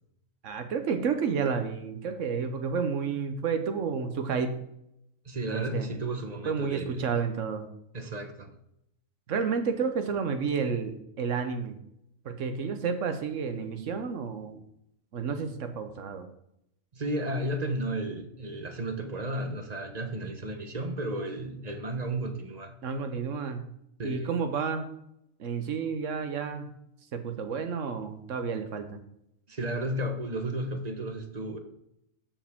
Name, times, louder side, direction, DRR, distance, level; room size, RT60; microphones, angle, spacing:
voice 1, 0.4-4.5 5.5-5.9 6.4-7.7 9.3-11.8 12.2-14.6 15.1-16.3 22.8-23.6 24.0-24.9 25.4-26.7 27.1-29.0, right 6 dB, 70° right, 7 dB, 1.3 m, -31 dB
voice 2, 5.2-7.1 7.9-8.5 16.9-22.7 24.0-24.3 29.5-31.6, right 1 dB, 35° right, 6 dB, 0.9 m, -33 dB
13.0 x 4.9 x 3.6 m, 0.77 s
omnidirectional pair, 1.4 m